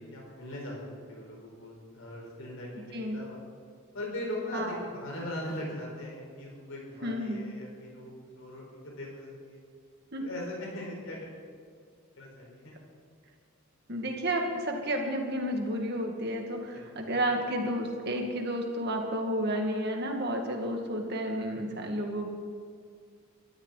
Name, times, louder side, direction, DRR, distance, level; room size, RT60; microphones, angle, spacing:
voice 1, 0.0-3.4 3.9-9.6 10.2-11.3 12.2-12.7 16.7-16.8 17.1-17.2, left 1 dB, 65° left, -2 dB, 5.0 m, -40 dB
voice 2, 7.0-7.5 10.1-10.3 13.9-22.3, equal, 45° right, 2 dB, 2.0 m, -31 dB
22.5 x 13.0 x 4.1 m, 2.2 s
head